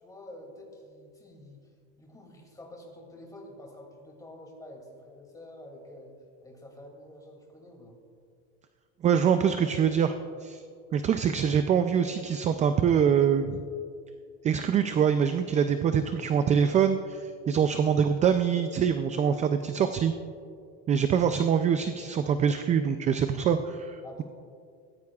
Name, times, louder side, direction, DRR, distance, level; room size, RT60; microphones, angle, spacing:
voice 1, 0.0-1.6 2.0-6.1 6.4-8.0 20.9-21.1 24.0-24.2, left 1 dB, 10° left, 0 dB, 2.5 m, -48 dB
voice 2, 9.0-10.1 10.4-10.6 10.9-13.6 14.4-20.1 20.9-24.2, right 7 dB, 25° right, 9 dB, 0.3 m, -24 dB
19.0 x 14.5 x 2.4 m, 2.3 s
cardioid pair, 140°, 32 cm